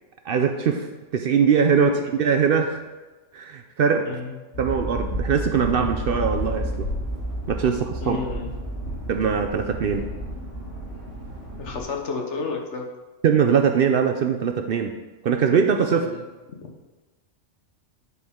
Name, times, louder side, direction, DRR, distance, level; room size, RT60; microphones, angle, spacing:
voice 1, 0.3-0.9 1.1-2.8 3.3-4.1 4.6-6.7 7.5-8.2 9.1-10.0 13.2-14.9 15.2-16.1, right 6 dB, 60° right, 5 dB, 0.6 m, -21 dB
voice 2, 4.0-4.3 8.0-8.5 11.6-12.9 15.9-16.2, left 4 dB, 70° left, 1 dB, 1.3 m, -31 dB
sound 1, 4.5-11.8, equal, 85° left, 3.0 m, -31 dB
10.5 x 4.8 x 3.6 m, 1.2 s
omnidirectional pair, 1.3 m